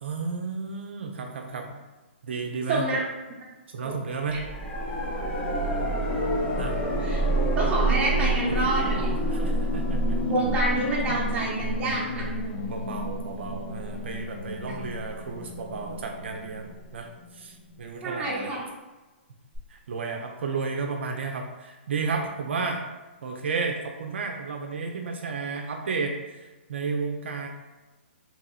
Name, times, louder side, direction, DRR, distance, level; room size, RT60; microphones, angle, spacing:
voice 1, 0.0-1.8 2.2-2.8 3.7-4.4 6.6-6.8 9.1-10.2 11.1-11.2 12.7-17.1 17.3-18.5 19.7-22.9 23.2-26.4 26.7-27.5, right 4 dB, 70° right, 2 dB, 0.4 m, -32 dB
voice 2, 2.7-3.1 3.8-4.0 4.3-4.4 7.0-7.2 7.5-9.1 10.3-12.3 14.7-14.8 18.0-18.6, right 2 dB, 20° right, -5 dB, 0.7 m, -28 dB
sound 1, 4.3-17.2 19.5-19.6, right 1 dB, 20° left, 0.6 m, -28 dB
2.8 x 2.8 x 2.3 m, 1.2 s
hypercardioid pair, 140°, 6 cm